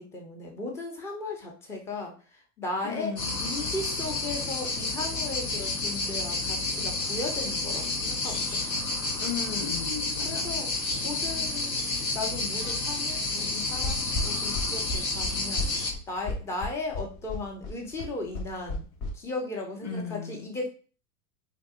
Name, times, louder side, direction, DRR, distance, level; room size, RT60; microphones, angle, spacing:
voice 1, 0.0-8.6 10.2-10.7 11.0-11.8 12.1-15.7 16.1-18.9 19.1-20.7, left 2 dB, 5° left, 0 dB, 0.3 m, -36 dB
voice 2, 2.8-3.3 9.2-10.5 19.8-20.5, left 6 dB, 35° left, 3 dB, 1.1 m, -35 dB
sound 1, 3.2-15.9, left 3 dB, 85° left, 0.9 m, -30 dB
sound 2, 13.8-19.1, left 2 dB, 50° left, 1.2 m, -33 dB
3.5 x 2.7 x 2.4 m, 0.37 s
hypercardioid pair, 95°, 48 cm